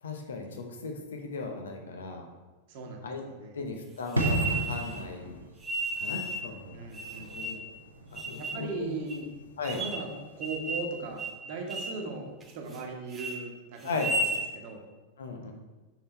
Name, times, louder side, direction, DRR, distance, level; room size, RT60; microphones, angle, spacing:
voice 1, 0.0-2.3 3.0-3.2 3.5-5.4 6.0-6.8 7.3-7.7 8.1-8.9 9.6-9.8 13.8-14.1 15.2-15.5, left 3 dB, 65° left, 3 dB, 0.9 m, -37 dB
voice 2, 2.7-3.6 6.7-7.7 8.4-9.3 9.7-10.1 10.4-14.2 14.5-14.8, right 3 dB, 50° right, 2 dB, 1.1 m, -38 dB
sound 1, 4.1-5.0 5.6-6.5 6.9-7.7 8.2-8.6 9.1-9.2 9.6-10.1 10.4-10.9 11.2-11.4 11.7-12.0 12.4-12.8 13.1-13.4 13.9-14.4, right 2 dB, 20° right, 0.7 m, -33 dB
sound 2, 4.1-10.6 10.9-11.1, right 1 dB, 85° right, 0.9 m, -35 dB
6.7 x 4.0 x 4.3 m, 1.2 s
figure-of-eight pair, 90°, 0 cm